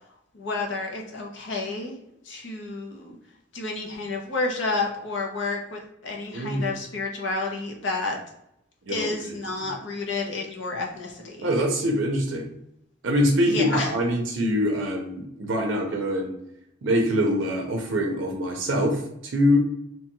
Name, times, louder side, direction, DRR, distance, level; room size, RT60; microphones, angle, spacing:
voice 1, 0.3-2.0 2.2-3.2 3.5-8.2 8.9-11.5 13.5-13.9, left 3 dB, 65° left, 0 dB, 0.7 m, -30 dB
voice 2, 6.3-6.7 8.9-9.3 11.4-12.5 13.0-16.4 16.8-19.6, equal, 70° right, 2 dB, 0.5 m, -24 dB
2.9 x 2.2 x 2.9 m, 0.79 s
head